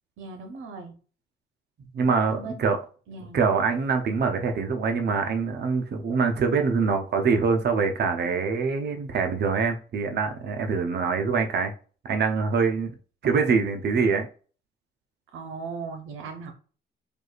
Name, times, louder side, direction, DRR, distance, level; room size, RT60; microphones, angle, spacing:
voice 1, 0.2-0.9 2.3-2.7 3.1-3.4 15.3-16.5, right 4 dB, 85° right, 0.9 m, -38 dB
voice 2, 1.9-2.8 3.3-11.7 12.0-12.9 13.2-14.3, right 5 dB, 55° right, 0.7 m, -24 dB
4.6 x 2.4 x 2.4 m
cardioid pair, 90°, 20 cm